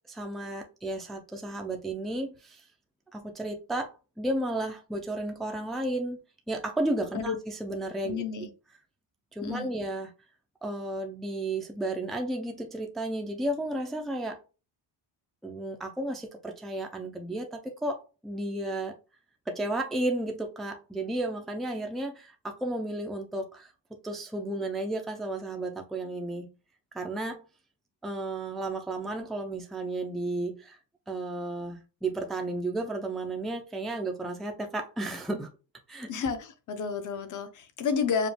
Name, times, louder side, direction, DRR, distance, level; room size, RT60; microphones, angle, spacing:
voice 1, 0.1-2.6 3.1-6.2 6.5-8.2 9.3-10.1 10.6-14.4 15.4-18.0 18.2-18.9 19.5-23.7 24.0-26.5 26.9-27.4 28.0-30.8 31.1-35.5 35.9-36.1, right 1 dB, ahead, 3 dB, 0.4 m, -33 dB
voice 2, 8.0-8.5 9.4-9.7 36.1-38.3, left 6 dB, 45° left, 9 dB, 0.7 m, -31 dB
5.0 x 2.2 x 3.2 m, 0.30 s
cardioid pair, 175°, 45 cm